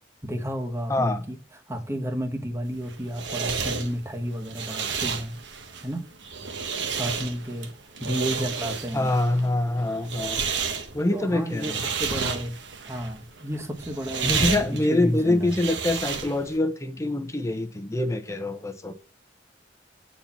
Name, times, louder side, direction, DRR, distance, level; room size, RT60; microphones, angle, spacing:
voice 1, 0.2-1.4 1.7-5.4 5.8-6.0 6.8-9.2 11.1-12.6 12.9-15.5, equal, 15° right, 1.2 m, -32 dB
voice 2, 0.9-1.2 8.9-10.4 10.9-11.8 14.2-18.9, left 2 dB, 15° left, 0.9 m, -25 dB
sound 1, 2.7-16.6, right 6 dB, 80° right, 1.2 m, -31 dB
8.8 x 4.3 x 7.2 m
head